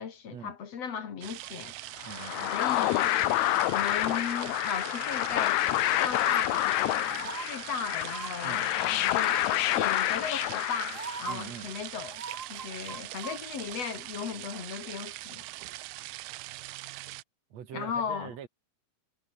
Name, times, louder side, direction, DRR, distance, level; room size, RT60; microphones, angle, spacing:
voice 1, 0.0-1.7 2.5-3.2 3.7-5.6 6.0-9.4 9.7-12.2 12.5-15.4 17.7-18.4, left 7 dB, 50° left, 2.8 m, -36 dB
sound 1, 1.2-17.2, right 19 dB, 75° right, 2.1 m, -42 dB
sound 2, 2.0-11.4, left 17 dB, 90° left, 1.6 m, -28 dB
voice 2, 2.0-2.6 8.4-8.6 11.3-11.7 17.5-18.5, right 8 dB, 50° right, 2.9 m, -43 dB
sound 3, 7.1-7.4 8.0-8.3 9.2-9.6 10.5-10.6 10.9-11.4 12.1-13.4 13.7-13.8, right 5 dB, 35° right, 1.3 m, -40 dB
omnidirectional pair, 4.2 m